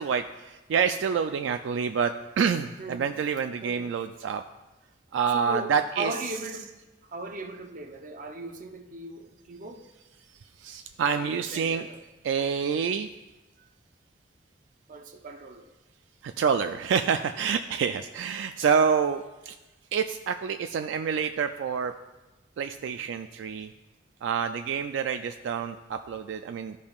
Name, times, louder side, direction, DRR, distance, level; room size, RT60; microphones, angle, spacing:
voice 1, 0.0-4.4 5.1-6.1 10.6-11.9 12.2-13.1 16.2-19.6 19.9-21.9 22.6-23.7 24.2-26.8, right 6 dB, 75° right, 7 dB, 0.3 m, -27 dB
voice 2, 3.6-3.9 5.3-6.7 7.0-9.8 11.0-12.0 13.6-13.7 14.9-15.7, right 2 dB, 45° right, 5 dB, 0.6 m, -38 dB
13.5 x 5.3 x 2.4 m, 1.1 s
head